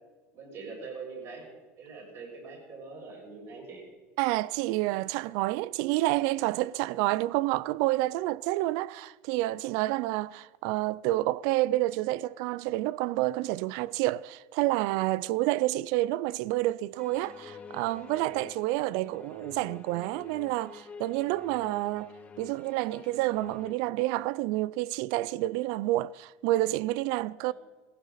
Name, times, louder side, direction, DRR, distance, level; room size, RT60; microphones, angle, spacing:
voice 1, 0.3-1.4 1.8-3.8 18.8-19.3 27.4-27.5, right 4 dB, 45° right, 6.7 m, -43 dB
voice 2, 4.2-27.5, right 17 dB, 65° right, 0.4 m, -29 dB
sound 1, 17.0-23.7, left 5 dB, 20° left, 1.4 m, -48 dB
18.0 x 16.0 x 4.2 m
supercardioid pair, 140°, 7 cm